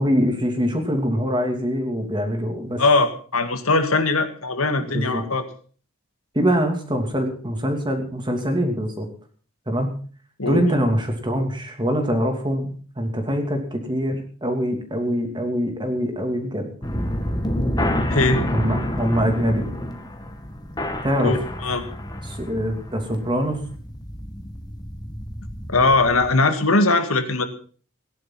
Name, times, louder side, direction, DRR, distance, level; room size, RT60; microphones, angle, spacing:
voice 1, 0.0-2.8 4.8-5.2 6.3-9.1 9.7-9.9 10.4-16.7 18.5-19.7 21.0-21.3 22.2-23.6, equal, 20° right, 4 dB, 2.8 m, -24 dB
voice 2, 2.8-5.5 10.4-10.6 18.1-18.5 21.2-21.8 25.7-27.5, left 3 dB, 80° left, 8 dB, 2.1 m, -20 dB
sound 1, 16.8-26.3, left 1 dB, 20° left, 1.9 m, -29 dB
18.0 x 10.5 x 5.9 m, 0.42 s
head